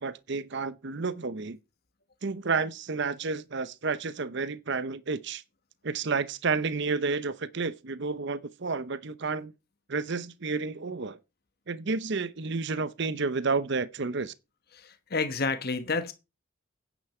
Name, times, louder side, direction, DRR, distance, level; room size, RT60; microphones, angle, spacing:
voice 1, 0.0-1.6 2.2-5.4 5.8-9.5 9.9-11.2 11.7-14.3, right 4 dB, 55° right, 0.8 m, -31 dB
voice 2, 14.7-16.1, left 4 dB, 45° left, 1.2 m, -30 dB
10.0 x 9.3 x 4.4 m
head